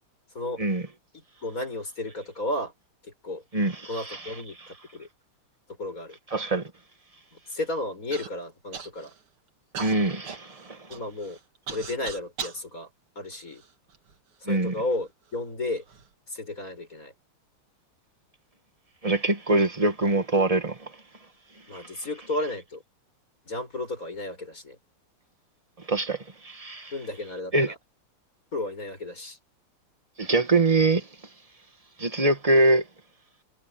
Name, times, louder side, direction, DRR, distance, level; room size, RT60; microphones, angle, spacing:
voice 1, 1.1-2.7 3.0-3.4 3.8-5.1 5.8-6.2 7.5-9.1 10.9-11.4 11.7-12.9 13.2-13.6 14.4-15.8 16.3-17.1 21.7-22.8 23.5-24.8 26.9-27.8 28.5-29.4, left 2 dB, 35° left, 7.9 m, -33 dB
voice 2, 3.5-4.2 6.3-6.6 9.8-10.8 14.5-14.7 19.0-20.9 21.7-21.9 25.9-26.9 27.5-27.7 30.2-31.1 32.0-32.8, right 2 dB, 15° right, 1.7 m, -24 dB
Human voice / Cough, 8.1-8.3 8.7-9.2 9.7-12.6 13.3-14.2 14.9-15.0 15.7-16.1, right 6 dB, 75° right, 2.9 m, -39 dB
omnidirectional pair, 2.4 m